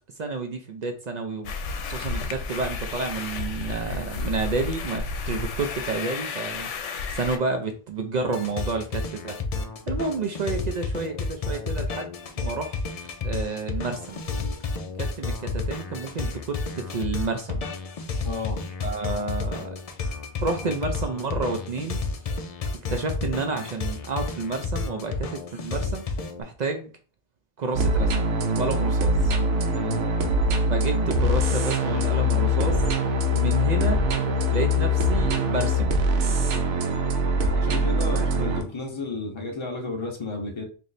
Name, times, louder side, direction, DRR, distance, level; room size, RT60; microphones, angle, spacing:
voice 1, 0.2-1.6 1.8-9.4 9.9-12.8 13.2-14.2 15.0-17.7 18.8-19.8 20.4-22.0 22.9-26.9 27.6-28.2 28.6-29.3 30.7-32.8 33.3-34.0 34.5-36.0 38.1-38.3, right 3 dB, 55° right, 5 dB, 0.5 m, -30 dB
sound 1, 1.4-7.4, left 4 dB, 80° left, 0.9 m, -32 dB
sound 2, 8.3-26.4, left 4 dB, 60° left, 0.4 m, -31 dB
voice 2, 18.2-18.6 29.7-30.1 37.5-40.7, left 3 dB, 30° left, 2 dB, 0.7 m, -32 dB
sound 3, 27.7-38.6, equal, 75° right, 1.0 m, -23 dB
3.1 x 2.7 x 3.9 m, 0.38 s
omnidirectional pair, 1.2 m